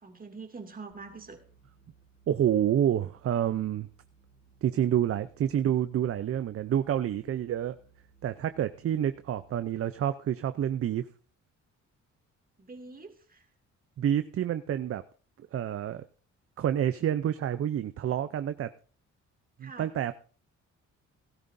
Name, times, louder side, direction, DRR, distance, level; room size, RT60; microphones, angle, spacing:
voice 1, 0.0-1.4 12.6-13.4 19.6-19.9, right 4 dB, 30° right, 4 dB, 2.4 m, -45 dB
sound 1, 0.9-10.0, right 5 dB, 50° left, 4.3 m, -62 dB
voice 2, 2.3-3.9 4.6-7.8 8.2-11.1 14.0-15.0 15.5-16.0 16.6-18.7 19.6-20.1, right 10 dB, 50° right, 11 dB, 0.6 m, -28 dB
17.5 x 12.5 x 2.7 m, 0.39 s
cardioid pair, 90°, 30 cm